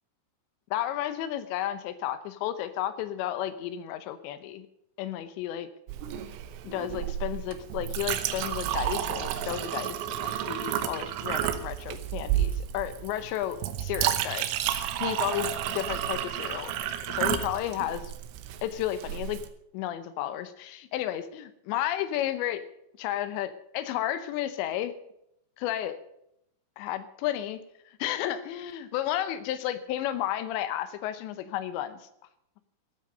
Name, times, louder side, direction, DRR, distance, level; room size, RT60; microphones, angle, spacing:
voice 1, 0.7-4.7 5.0-5.7 6.6-16.8 17.1-18.1 18.6-19.4 19.7-22.6 23.0-24.9 25.6-26.0 26.8-27.6 28.0-32.0, left 12 dB, 75° left, 12 dB, 2.8 m, -32 dB
Chink clink, 5.9-19.5, right 11 dB, 80° right, 3.4 m, -31 dB
15.5 x 8.9 x 6.6 m, 0.77 s
omnidirectional pair, 5.9 m